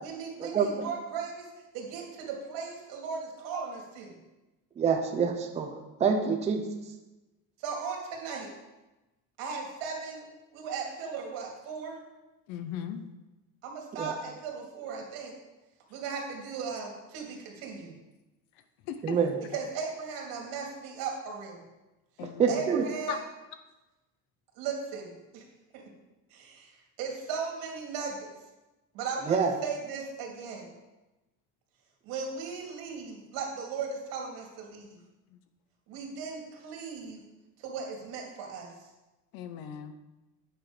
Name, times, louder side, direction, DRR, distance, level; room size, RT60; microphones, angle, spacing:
voice 1, 0.0-1.5 1.7-4.2 7.6-8.5 9.4-10.2 10.5-12.0 13.6-15.3 15.9-17.9 19.5-21.6 22.5-23.2 24.5-25.4 25.7-25.8 26.3-26.7 27.0-28.2 28.9-30.7 32.0-35.0 35.9-37.2 37.6-38.7, right 5 dB, 80° right, 0 dB, 2.5 m, -37 dB
voice 2, 4.8-5.7 6.0-6.6 14.0-14.1 19.0-19.3 22.4-22.8 29.3-29.5, right 6 dB, 20° right, 4 dB, 0.6 m, -26 dB
voice 3, 12.5-13.0 18.9-19.2 22.2-22.6 23.1-23.2 39.3-40.0, left 8 dB, 80° left, 9 dB, 1.0 m, -37 dB
9.1 x 6.1 x 5.0 m, 1.1 s
cardioid pair, 180°, 36 cm